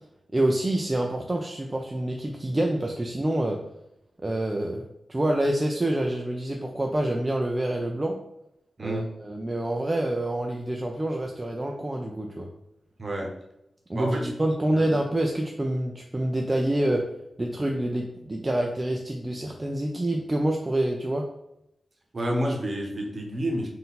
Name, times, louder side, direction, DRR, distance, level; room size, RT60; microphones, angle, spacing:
voice 1, 0.3-3.6 4.2-8.2 8.8-12.5 13.9-17.1 17.4-21.2, right 1 dB, 30° right, 1 dB, 0.5 m, -27 dB
voice 2, 13.9-14.3 14.7-14.9 22.1-23.7, right 1 dB, 50° right, 0 dB, 1.0 m, -29 dB
3.8 x 2.6 x 4.0 m, 0.83 s
cardioid pair, 50°, 0 cm